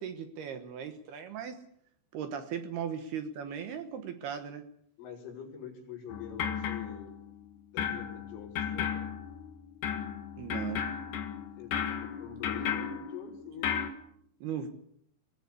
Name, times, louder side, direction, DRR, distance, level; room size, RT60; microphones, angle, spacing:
voice 1, 0.0-1.6 2.1-4.7 10.4-10.9 14.4-14.7, right 8 dB, 65° right, 8 dB, 2.8 m, -38 dB
voice 2, 5.0-7.2 7.7-8.9 11.6-13.7, left 8 dB, 75° left, 0 dB, 7.2 m, -44 dB
sound 1, 6.1-7.4 7.8-13.9, left 8 dB, 55° left, 2.8 m, -35 dB
23.5 x 18.0 x 8.4 m, 0.72 s
omnidirectional pair, 5.6 m